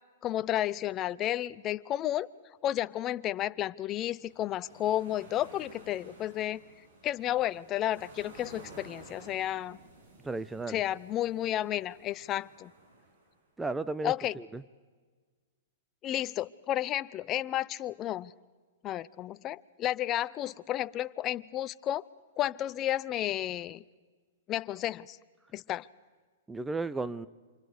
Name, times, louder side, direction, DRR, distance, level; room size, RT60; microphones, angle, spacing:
voice 1, 0.2-2.3 2.6-6.6 7.0-9.8 10.7-12.7 14.0-14.4 16.0-18.3 18.8-22.0 22.4-23.8 24.5-25.2 25.5-25.9, left 13 dB, 30° left, 0.6 m, -32 dB
sound 1, 4.1-13.4, right 2 dB, 60° right, 6.6 m, -54 dB
voice 2, 10.2-10.8 13.6-14.6 26.5-27.3, right 3 dB, 10° right, 0.7 m, -34 dB
28.5 x 25.5 x 5.0 m
hypercardioid pair, 125°, 0 cm